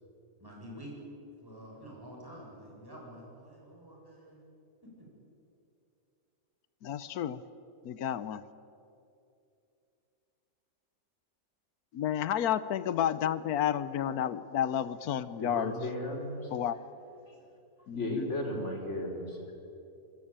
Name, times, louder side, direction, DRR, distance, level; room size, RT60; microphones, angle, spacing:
voice 1, 0.4-0.9 1.4-4.4 5.0-5.1, equal, 15° right, -3 dB, 8.1 m, -48 dB
voice 2, 6.8-7.4 7.8-8.4 11.9-15.7 16.5-16.8 17.9-18.3, left 10 dB, 85° left, 15 dB, 1.3 m, -31 dB
voice 3, 15.4-16.5 17.9-19.5, left 1 dB, 50° left, 2 dB, 4.4 m, -35 dB
26.5 x 20.5 x 8.9 m, 2.7 s
omnidirectional pair, 1.5 m